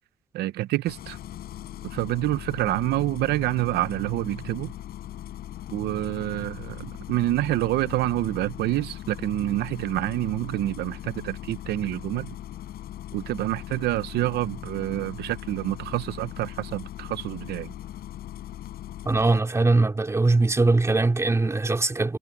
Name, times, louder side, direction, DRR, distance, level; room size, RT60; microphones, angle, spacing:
voice 1, 0.3-1.2 1.8-4.7 5.7-12.3 13.1-17.7, right 16 dB, 75° right, 0.8 m, -27 dB
Engine starting, 0.8-19.4, left 12 dB, 65° left, 5.3 m, -39 dB
voice 2, 19.0-22.2, right 3 dB, 15° right, 3.0 m, -21 dB
cardioid pair, 110°, 17 cm